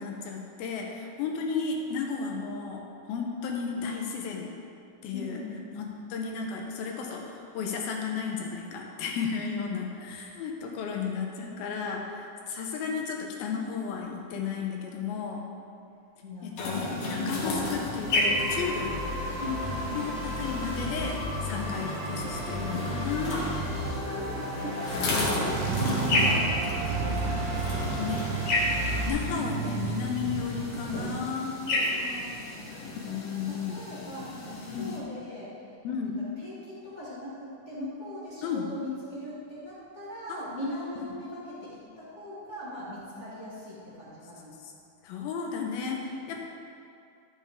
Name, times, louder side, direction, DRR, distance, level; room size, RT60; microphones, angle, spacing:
voice 1, 0.0-2.8 3.1-4.5 5.0-5.4 5.8-15.4 16.4-19.0 20.0-23.4 25.9-26.3 27.8-28.4 29.1-31.5 33.0-33.8 34.7-35.0 35.8-36.2 38.4-38.7 40.3-40.4 44.6-44.7 45.0-46.4, left 6 dB, 80° left, 0 dB, 2.6 m, -33 dB
voice 2, 5.1-5.7 16.2-17.1 19.4-20.4 23.8-28.2 31.9-33.2 33.4-35.5 36.4-44.5, left 1 dB, 30° left, -11 dB, 1.3 m, -40 dB
sound 1, 16.6-35.0, left 2 dB, 65° left, 1.6 m, -33 dB
sound 2, 18.1-29.1, equal, 50° right, 1.4 m, -33 dB
sound 3, 25.5-31.2, right 7 dB, 85° right, 2.7 m, -33 dB
12.5 x 7.3 x 3.5 m, 2.5 s
omnidirectional pair, 4.5 m